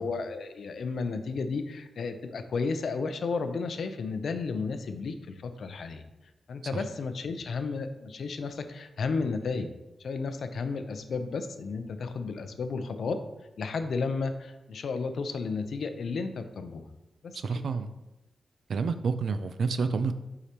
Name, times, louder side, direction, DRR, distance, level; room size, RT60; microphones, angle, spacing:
voice 1, 0.0-6.0 6.5-9.7 10.0-13.2 13.6-16.8 17.2-17.7, left 4 dB, 70° left, 8 dB, 0.6 m, -33 dB
voice 2, 17.3-17.9 18.7-20.1, right 4 dB, 70° right, 10 dB, 0.4 m, -29 dB
8.2 x 4.8 x 2.9 m, 0.98 s
wide cardioid pair, 130°, 0 cm